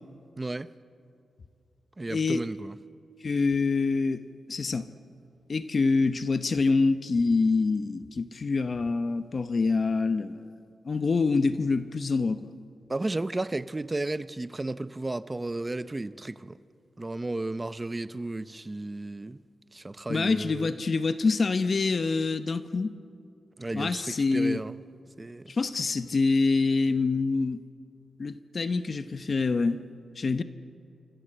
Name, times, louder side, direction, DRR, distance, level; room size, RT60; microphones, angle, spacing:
voice 1, 0.4-0.7 2.0-2.8 12.9-16.6 17.0-19.4 19.7-20.7 23.6-24.8 25.2-25.6, right 2 dB, 20° right, 0.6 m, -33 dB
voice 2, 2.1-2.4 3.2-4.2 4.5-4.9 5.5-10.4 10.8-12.5 20.1-23.0 23.7-24.6 25.5-27.6 28.2-29.8 30.2-30.4, left 4 dB, 40° left, 0.8 m, -26 dB
26.5 x 26.0 x 7.9 m
wide cardioid pair, 135°, 0 cm